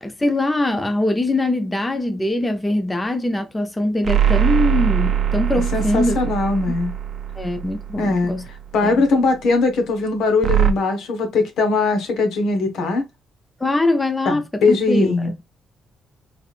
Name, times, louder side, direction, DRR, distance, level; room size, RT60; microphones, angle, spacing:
voice 1, 0.0-6.2 7.4-8.4 8.8-9.0 13.6-15.4, left 1 dB, 15° left, 0.6 m, -22 dB
sound 1, 4.0-8.7 10.4-10.7, right 10 dB, 55° right, 0.5 m, -21 dB
voice 2, 5.7-6.9 8.0-8.4 8.7-13.0 14.3-15.3, left 3 dB, 75° left, 1.1 m, -20 dB
3.4 x 3.3 x 2.4 m
cardioid pair, 90°, 0 cm